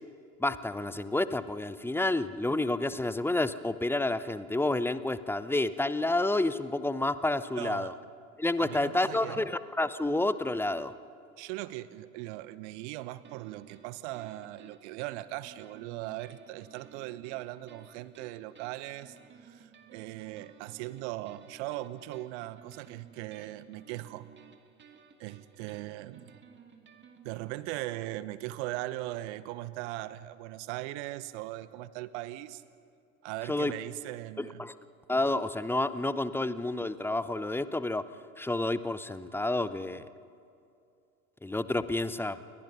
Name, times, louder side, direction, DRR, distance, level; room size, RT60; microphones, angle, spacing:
voice 1, 0.4-7.9 8.4-10.9 33.5-33.7 34.4-34.7 35.1-38.1 38.4-40.1 41.4-42.4, left 2 dB, 5° left, 15 dB, 0.7 m, -29 dB
voice 2, 7.6-7.9 8.6-9.4 11.4-24.3 25.2-26.3 27.2-32.6 33.2-34.6, right 16 dB, 55° right, 16 dB, 1.1 m, -39 dB
sound 1, 13.2-27.5, right 7 dB, 25° right, 2.2 m, -56 dB
29.5 x 22.0 x 5.5 m, 2.5 s
figure-of-eight pair, 75°, 43 cm